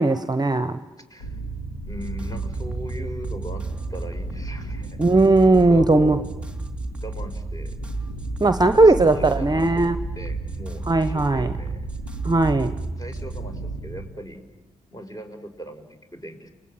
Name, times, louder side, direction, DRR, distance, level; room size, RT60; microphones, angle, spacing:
voice 1, 0.0-0.8 5.0-6.2 8.4-9.9 10.9-11.5 12.2-12.7, right 2 dB, 25° right, 1.1 m, -18 dB
voice 2, 1.0-1.4 1.9-5.2 5.5-6.3 7.0-7.8 8.4-11.9 13.0-14.4 14.9-16.5, right 1 dB, 20° left, 5.3 m, -38 dB
sound 1, 1.2-14.1, right 3 dB, 90° left, 4.2 m, -34 dB
sound 2, 1.9-13.4, right 1 dB, 5° right, 2.9 m, -35 dB
30.0 x 21.0 x 9.0 m
supercardioid pair, 50°, 17 cm